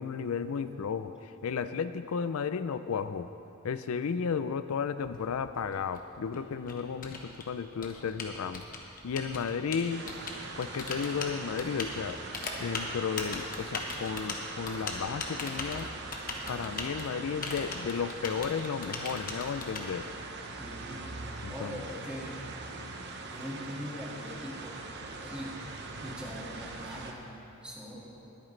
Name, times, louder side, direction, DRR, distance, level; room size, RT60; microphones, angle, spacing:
voice 1, 0.0-3.3 3.6-8.6 9.0-10.0 10.6-12.2 12.6-15.9 16.5-20.1 21.4-21.8, left 6 dB, 85° left, 11 dB, 0.4 m, -33 dB
Typing, 5.1-19.8, left 4 dB, 40° left, 1.2 m, -39 dB
sound 1, 9.9-27.1, right 3 dB, 55° right, 0.9 m, -42 dB
voice 2, 20.5-21.1 21.5-22.4 23.3-24.8 25.2-25.5 26.0-28.1, equal, 5° right, -5 dB, 1.9 m, -42 dB
21.5 x 8.9 x 3.2 m, 2.8 s
head